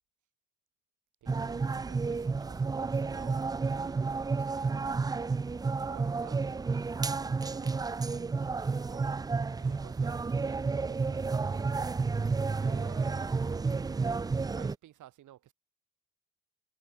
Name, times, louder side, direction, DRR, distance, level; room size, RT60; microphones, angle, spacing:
voice 1, 1.2-5.2 5.8-6.9 7.4-9.1 9.6-12.0 12.6-14.1 14.4-15.5, right 13 dB, 80° right, 6.7 m, -55 dB
sound 1, 1.3-14.7, right 4 dB, 15° right, 0.3 m, -31 dB
cardioid pair, 90°, 30 cm